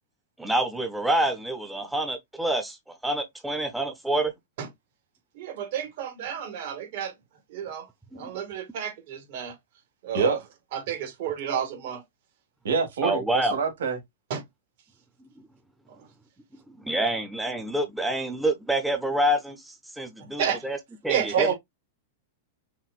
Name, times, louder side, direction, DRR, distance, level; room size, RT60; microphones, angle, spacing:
voice 1, 0.4-4.3 8.1-8.4 13.0-13.5 16.7-20.8 21.0-21.5, right 1 dB, 5° right, 0.7 m, -27 dB
voice 2, 5.3-7.1 7.5-7.9 8.2-9.6 10.0-10.4 10.7-12.0 14.3-14.4 20.4-20.7 21.1-21.5, right 8 dB, 60° right, 1.8 m, -31 dB
voice 3, 12.6-13.2 13.5-14.0 21.3-21.5, right 5 dB, 85° right, 1.9 m, -24 dB
5.9 x 2.6 x 2.4 m
hypercardioid pair, 135°, 0 cm